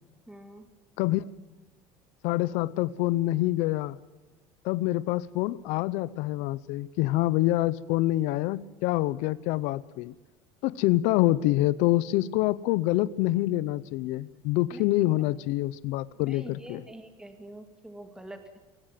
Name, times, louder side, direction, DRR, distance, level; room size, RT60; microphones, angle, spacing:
voice 1, 0.3-0.6 14.7-15.1 16.3-18.6, right 1 dB, 5° right, 7 dB, 2.4 m, -46 dB
voice 2, 2.2-4.0 4.6-10.1 10.6-16.8, left 17 dB, 75° left, 17 dB, 0.7 m, -26 dB
23.5 x 18.0 x 7.5 m, 1.1 s
cardioid pair, 130°, 12 cm